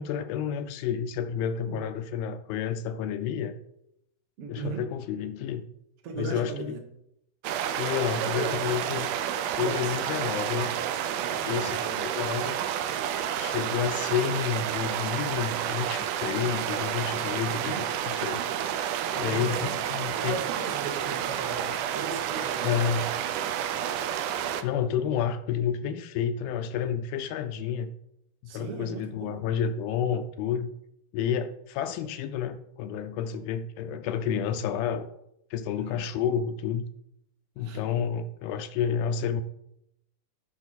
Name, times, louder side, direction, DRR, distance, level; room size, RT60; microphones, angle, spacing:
voice 1, 0.0-3.6 4.5-5.7 6.2-6.7 7.8-9.1 9.6-10.8 11.4-12.6 13.4-18.4 19.2-20.4 22.6-23.1 24.6-27.9 28.4-30.7 31.1-35.1 35.5-36.9 37.6-39.4, left 8 dB, 80° left, 9 dB, 2.3 m, -30 dB
voice 2, 4.4-4.9 6.0-6.8 8.2-9.1 9.5-10.0 10.3-10.4 11.1-12.1 17.5-17.8 19.3-19.8 20.1-23.1 28.5-29.5 35.7-36.0 37.6-37.8, right 5 dB, 65° right, 4 dB, 1.4 m, -38 dB
sound 1, 7.4-24.6, right 10 dB, 85° right, 1.8 m, -30 dB
14.0 x 6.0 x 4.1 m, 0.80 s
omnidirectional pair, 4.4 m